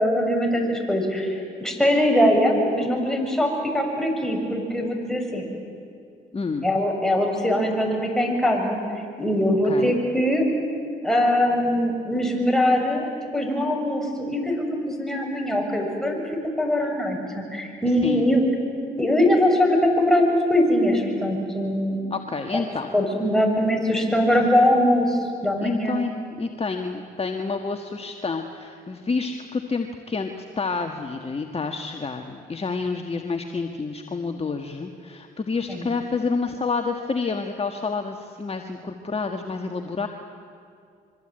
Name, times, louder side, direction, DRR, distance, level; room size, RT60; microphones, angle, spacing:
voice 1, 0.0-1.3 1.6-5.5 6.6-8.8 9.2-10.5 11.0-13.1 13.3-16.2 16.6-18.4 19.0-22.0 22.5-22.6 22.9-26.0 35.7-35.9, left 1 dB, ahead, 1 dB, 7.2 m, -22 dB
voice 2, 6.3-6.6 9.6-9.9 18.0-18.3 22.1-22.9 24.3-24.5 25.6-40.1, left 4 dB, 30° left, 4 dB, 1.7 m, -29 dB
26.0 x 23.5 x 9.0 m, 2.4 s
supercardioid pair, 60°, 19 cm